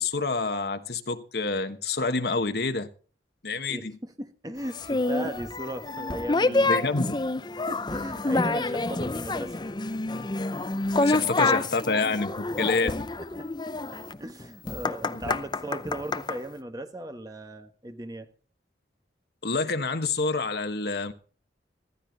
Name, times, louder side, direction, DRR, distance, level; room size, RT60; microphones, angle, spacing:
voice 1, 0.0-2.9 3.4-4.0 6.7-7.1 11.0-12.9 15.3-15.4 19.4-21.1, left 3 dB, 60° left, 1.2 m, -28 dB
voice 2, 3.7-7.0 7.5-9.7 10.9-11.7 12.3-12.7 13.2-13.5 14.2-18.3, right 1 dB, 20° right, 1.3 m, -37 dB
sound 1, 4.7-16.4, left 3 dB, 25° left, 0.6 m, -28 dB
15.0 x 13.5 x 4.0 m
head